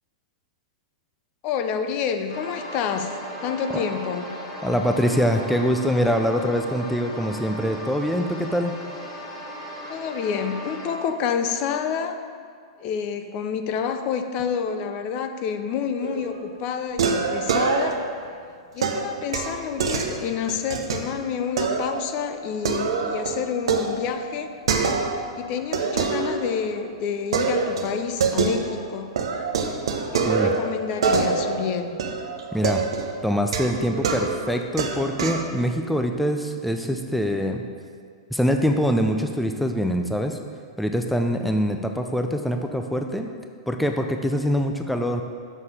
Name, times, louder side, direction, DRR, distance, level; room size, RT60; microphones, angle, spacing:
voice 1, 1.4-3.2 3.4-4.3 9.9-12.2 12.8-18.0 18.7-24.5 25.3-29.1 30.1-32.0, left 7 dB, 45° left, 8 dB, 0.6 m, -28 dB
sound 1, 2.3-10.9, equal, 60° left, 1.8 m, -37 dB
voice 2, 4.6-8.7 30.3-30.5 32.5-32.9 33.2-37.6 38.3-40.4 40.8-43.3 43.7-45.2, equal, ahead, 4 dB, 0.5 m, -24 dB
sound 2, 16.0-16.4 17.0-18.2 18.8-21.0 21.6-22.0 22.4-25.3 25.7-26.8 27.3-28.9 29.2-35.5, right 5 dB, 75° right, 0.8 m, -25 dB
6.3 x 5.5 x 6.6 m, 2.1 s
hypercardioid pair, 115°, 3 cm